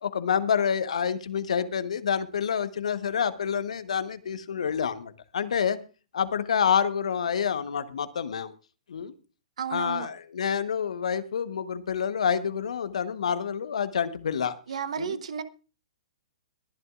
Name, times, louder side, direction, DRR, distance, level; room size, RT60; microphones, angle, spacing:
voice 1, 0.0-5.8 6.1-8.5 8.9-9.1 9.7-14.5 15.0-15.2, left 7 dB, 65° left, 13 dB, 1.1 m, -28 dB
voice 2, 9.6-10.1 14.7-15.4, right 7 dB, 65° right, 12 dB, 1.2 m, -32 dB
22.0 x 11.0 x 2.5 m, 0.34 s
figure-of-eight pair, 115°, 4 cm